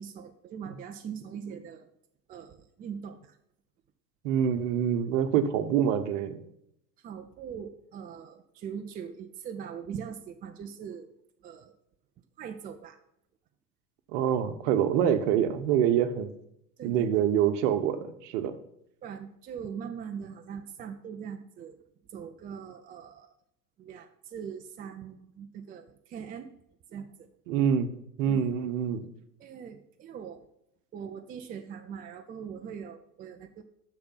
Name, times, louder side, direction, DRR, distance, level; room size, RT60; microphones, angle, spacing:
voice 1, 0.0-1.9 2.3-3.4 7.0-11.1 11.4-11.7 12.4-13.0 16.8-17.3 19.0-21.8 22.1-23.3 23.8-26.5 26.9-27.3 28.3-28.5 29.4-30.5 30.9-33.6, right 7 dB, 20° right, 6 dB, 0.5 m, -41 dB
voice 2, 4.2-6.4 14.1-16.3 16.8-18.6 27.5-27.9 28.2-29.0, right 9 dB, 45° right, 9 dB, 1.2 m, -26 dB
10.5 x 6.7 x 5.7 m, 0.77 s
figure-of-eight pair, 80°, 50 cm